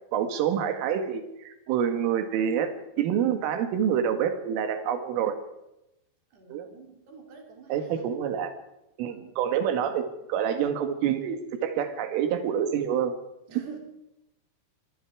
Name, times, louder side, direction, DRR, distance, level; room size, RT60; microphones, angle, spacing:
voice 1, 0.1-5.4 6.5-6.7 7.7-8.5 9.0-13.1, right 8 dB, 75° right, 7 dB, 4.4 m, -27 dB
voice 2, 6.3-8.1 9.1-9.3 13.5-13.8, right 5 dB, 55° right, 2 dB, 5.8 m, -47 dB
25.0 x 23.0 x 4.8 m, 0.89 s
omnidirectional pair, 6.0 m